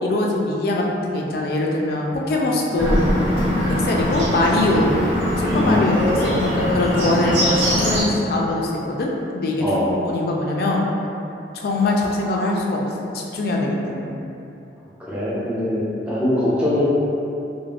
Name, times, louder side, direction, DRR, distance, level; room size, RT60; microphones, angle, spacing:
voice 1, 0.0-3.1 3.7-4.9 5.4-7.3 7.7-10.9 11.5-14.2, left 2 dB, 55° left, -2 dB, 0.3 m, -22 dB
Bird, 2.8-8.0, equal, 80° right, 0.7 m, -21 dB
voice 2, 5.4-6.1 9.6-9.9 15.0-15.8 16.1-16.8, left 1 dB, 5° right, -10 dB, 0.5 m, -22 dB
2.4 x 2.1 x 3.2 m, 2.8 s
head